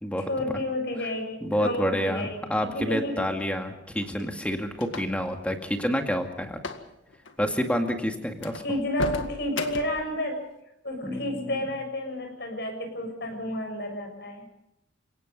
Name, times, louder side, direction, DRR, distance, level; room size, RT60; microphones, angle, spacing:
voice 1, 0.3-3.3 8.6-10.4 10.8-14.5, left 1 dB, 60° left, 5 dB, 6.9 m, -31 dB
voice 2, 1.4-6.6 7.4-8.6 11.0-11.7, equal, 5° left, 4 dB, 2.2 m, -28 dB
sound 1, 4.0-5.3 6.5-6.9 7.1-7.3 7.9-8.0 8.4-10.1, left 3 dB, 85° left, 2.0 m, -35 dB
30.0 x 18.0 x 5.5 m, 0.85 s
head